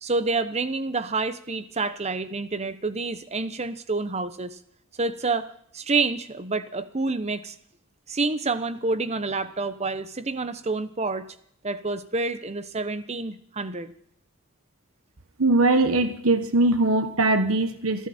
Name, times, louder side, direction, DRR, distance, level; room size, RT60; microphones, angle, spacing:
voice 1, 0.0-4.6 5.0-7.5 8.1-11.3 11.6-13.9, right 3 dB, 30° right, 12 dB, 0.9 m, -28 dB
voice 2, 15.4-18.1, right 2 dB, 75° right, 9 dB, 1.3 m, -21 dB
29.5 x 11.0 x 4.3 m, 0.67 s
head